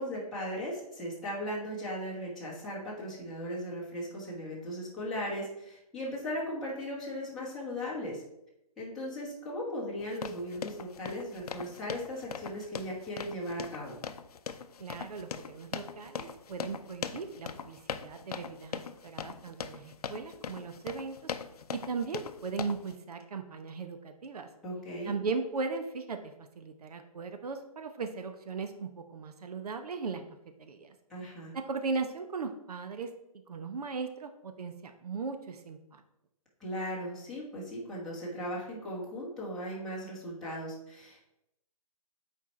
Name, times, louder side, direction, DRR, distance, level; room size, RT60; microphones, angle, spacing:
voice 1, 0.0-8.2 8.8-14.0 24.6-25.1 31.1-31.5 36.6-41.3, equal, ahead, -9 dB, 1.1 m, -37 dB
sound 1, 10.0-22.9, left 7 dB, 80° left, 0.6 m, -41 dB
voice 2, 14.8-21.3 21.7-24.5 25.0-30.2 30.6-30.9 31.5-33.1 33.5-36.0, right 4 dB, 80° right, 7 dB, 0.8 m, -38 dB
7.1 x 4.5 x 4.2 m, 0.84 s
hypercardioid pair, 175°, 19 cm